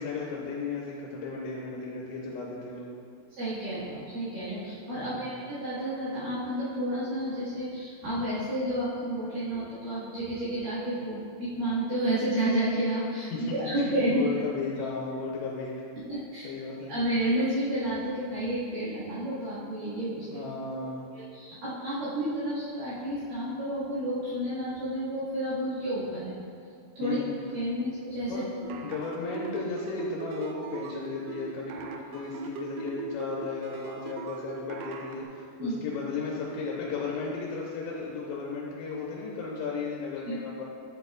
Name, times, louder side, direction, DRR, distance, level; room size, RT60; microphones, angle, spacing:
voice 1, 0.0-2.9 5.0-5.4 13.3-15.7 16.4-17.0 20.3-21.1 27.0-27.4 28.3-28.4 28.8-40.6, left 4 dB, 85° left, -4 dB, 3.0 m, -35 dB
voice 2, 3.4-13.3 13.6-14.3 16.1-16.5 16.9-20.4 21.1-26.4 27.0-27.2 27.5-28.7 35.6-35.8 40.3-40.4, right 1 dB, 60° right, -13 dB, 3.1 m, -31 dB
sound 1, 28.6-35.2, right 6 dB, 85° right, 2.8 m, -39 dB
10.5 x 6.7 x 2.4 m, 2.3 s
omnidirectional pair, 5.0 m